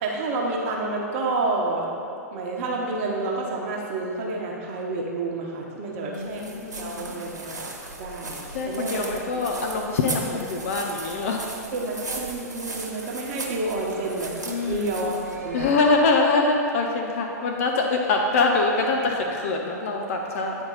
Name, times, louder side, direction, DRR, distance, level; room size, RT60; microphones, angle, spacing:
voice 1, 0.0-1.9 2.3-9.6 11.7-14.3 14.7-15.7, right 2 dB, 45° right, -2 dB, 1.0 m, -29 dB
voice 2, 5.9-7.3 8.5-11.4 14.5-15.0 15.5-20.6, left 3 dB, 55° left, 2 dB, 0.6 m, -24 dB
sound 1, 6.1-16.0, right 3 dB, 85° right, 1.1 m, -37 dB
9.4 x 4.4 x 4.0 m, 2.8 s
figure-of-eight pair, 105°, 9 cm